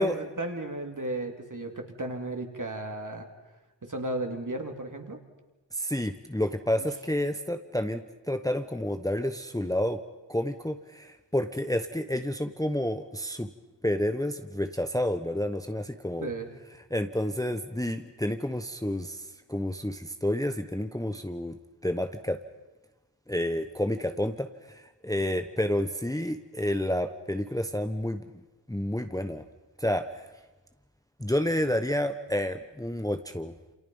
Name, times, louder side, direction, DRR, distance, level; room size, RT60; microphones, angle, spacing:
voice 1, 0.0-3.3 3.8-5.2 6.8-6.9 16.2-16.5, right 2 dB, 45° right, 4 dB, 2.9 m, -34 dB
voice 2, 5.7-10.0 10.3-13.5 13.8-16.3 16.9-22.4 23.3-28.4 28.7-29.4 29.8-30.3 31.2-33.5, left 1 dB, 10° left, 8 dB, 1.0 m, -30 dB
28.5 x 27.5 x 5.5 m, 1.1 s
wide cardioid pair, 75°, 43 cm